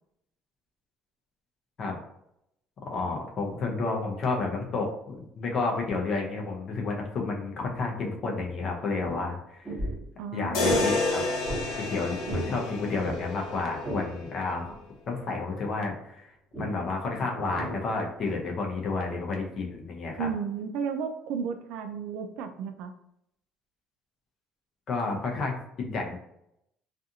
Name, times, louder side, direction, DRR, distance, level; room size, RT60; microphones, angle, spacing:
voice 1, 2.8-9.7 10.3-11.2 11.8-14.8 15.1-16.3 16.6-20.3 24.9-26.2, left 3 dB, 40° left, 1 dB, 0.6 m, -31 dB
sound 1, 8.4-8.5 8.8-9.3 9.6-10.1 10.7-10.9 11.5-11.7 12.1-12.6 12.8-14.1 14.6-14.8 16.5-16.8 17.3-18.4 19.0-19.2, right 1 dB, 15° right, 1.2 m, -35 dB
voice 2, 10.2-10.9 20.2-22.9, right 6 dB, 75° right, 7 dB, 0.3 m, -33 dB
sound 2, 10.5-14.6, left 2 dB, 90° left, 0.7 m, -30 dB
2.5 x 2.4 x 2.7 m, 0.78 s
cardioid pair, 155°, 0 cm